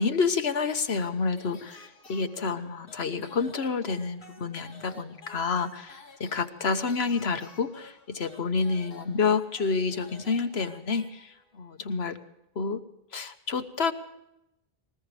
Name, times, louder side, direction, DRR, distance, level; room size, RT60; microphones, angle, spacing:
voice 1, 0.0-12.2 12.5-12.8 13.1-13.9, left 4 dB, 85° left, 9 dB, 1.4 m, -29 dB
sound 1, 0.5-11.6, left 2 dB, 65° left, 2.4 m, -52 dB
21.0 x 19.5 x 3.4 m, 0.87 s
omnidirectional pair, 1.0 m